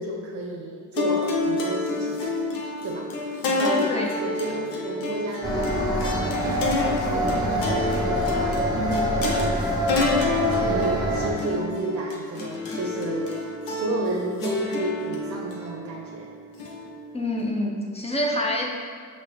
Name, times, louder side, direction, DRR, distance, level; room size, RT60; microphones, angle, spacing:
voice 1, 0.0-2.5 2.8-3.1 3.4-6.2 6.8-16.3, right 1 dB, 50° right, -1 dB, 0.6 m, -32 dB
sound 1, 1.0-17.4, left 2 dB, 85° left, 0.8 m, -29 dB
sound 2, 5.4-11.3, equal, 10° right, 1.0 m, -25 dB
voice 2, 17.1-18.7, left 1 dB, 20° left, 0 dB, 0.7 m, -26 dB
5.7 x 2.6 x 3.3 m, 2.1 s
cardioid pair, 75°, 34 cm